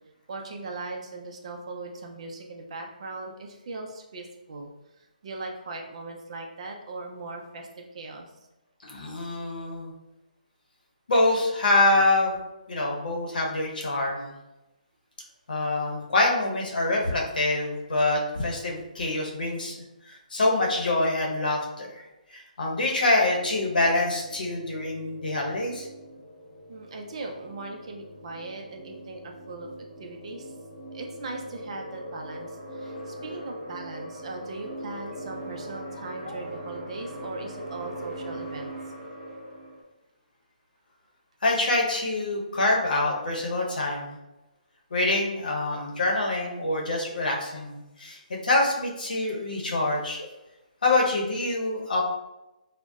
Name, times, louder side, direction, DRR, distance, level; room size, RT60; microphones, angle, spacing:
voice 1, 0.3-4.7 5.0-8.3 26.7-29.7 30.0-30.5 30.9-38.7, right 3 dB, 45° right, 2 dB, 0.4 m, -39 dB
voice 2, 8.8-9.9 11.1-12.4 12.7-14.3 15.5-19.7 20.1-22.0 22.3-25.9 36.2-36.3 41.4-44.2 44.9-50.3 50.8-52.0, left 2 dB, 75° left, -1 dB, 0.8 m, -25 dB
sound 1, 23.3-39.8, right 1 dB, ahead, 1.2 m, -41 dB
3.7 x 2.1 x 2.3 m, 0.96 s
hypercardioid pair, 165°, 5 cm